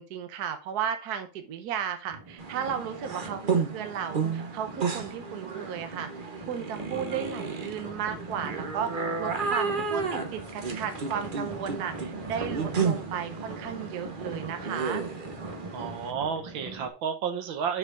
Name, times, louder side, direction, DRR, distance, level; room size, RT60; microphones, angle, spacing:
voice 1, 0.0-6.1 6.4-15.1, right 8 dB, 60° right, 8 dB, 1.3 m, -34 dB
sound 1, 2.1-16.9, right 2 dB, 20° right, 1.1 m, -42 dB
sound 2, 2.4-16.1, right 5 dB, 40° right, 0.7 m, -33 dB
voice 2, 15.7-17.8, right 7 dB, 75° right, 6 dB, 1.8 m, -31 dB
6.3 x 4.9 x 4.9 m, 0.33 s
omnidirectional pair, 2.1 m